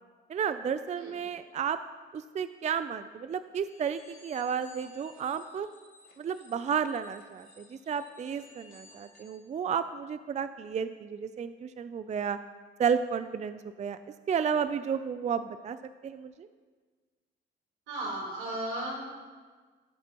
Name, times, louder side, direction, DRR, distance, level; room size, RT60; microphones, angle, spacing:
voice 1, 0.3-1.8 2.1-5.7 6.2-12.4 12.8-14.0 14.3-15.8 16.0-16.5, right 7 dB, 35° right, 11 dB, 0.4 m, -32 dB
sound 1, 3.6-9.4, left 2 dB, 45° left, 2.9 m, -57 dB
voice 2, 17.9-19.0, right 1 dB, 90° right, -3 dB, 3.6 m, -35 dB
17.0 x 8.1 x 3.0 m, 1.4 s
cardioid pair, 90°, 20 cm